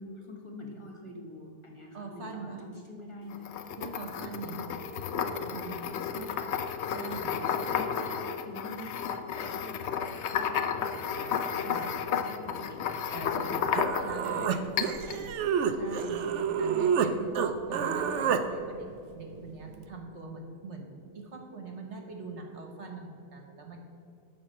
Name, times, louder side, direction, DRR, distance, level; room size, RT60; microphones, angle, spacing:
voice 1, 0.0-3.5 4.5-4.7 6.1-6.5 6.9-7.2 7.4-11.9 12.2-12.8 13.3-13.6 14.2-15.4 16.6-17.2 17.7-17.8, left 1 dB, 20° left, 1 dB, 1.2 m, -45 dB
voice 2, 1.9-2.6 3.8-4.6 5.5-5.9 6.9-7.4 11.6-12.0 13.1-13.7 14.0-14.5 15.7-18.9 19.1-23.8, right 3 dB, 45° right, 3 dB, 1.3 m, -42 dB
sound 1, 3.3-14.3 14.8-15.2, left 7 dB, 85° left, 0.6 m, -32 dB
Human voice, 13.4-13.5 13.7-17.1 17.3-18.4, right 7 dB, 75° right, 0.6 m, -28 dB
11.0 x 4.8 x 7.7 m, 2.6 s
omnidirectional pair, 1.9 m